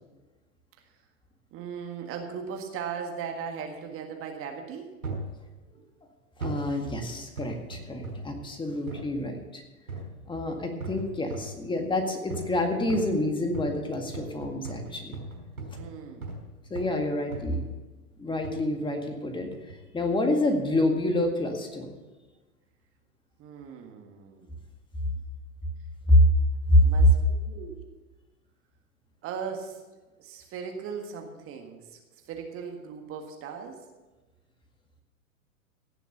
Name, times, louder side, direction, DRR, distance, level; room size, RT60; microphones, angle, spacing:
voice 1, 1.5-5.0 5.7-5.8 15.8-16.3 23.4-24.6 26.8-27.9 29.2-29.8 30.2-33.8, right 6 dB, 30° right, 3 dB, 1.7 m, -38 dB
sound 1, 5.0-5.3 6.4-6.7 7.4-8.3 8.9-9.1 9.9-10.2 10.8-11.6 12.3-12.6 12.9-16.5 16.7-17.0 17.3-17.7 18.4-18.7 19.5-19.8 20.4-20.5, right 2 dB, 80° right, 4.5 m, -38 dB
voice 2, 6.4-9.6 10.3-15.2 16.7-17.7 18.2-19.5 19.9-22.0 26.1-26.2 26.7-26.8, left 1 dB, 10° left, 4 dB, 1.9 m, -27 dB
17.0 x 7.1 x 6.9 m, 1.2 s
figure-of-eight pair, 105°, 44 cm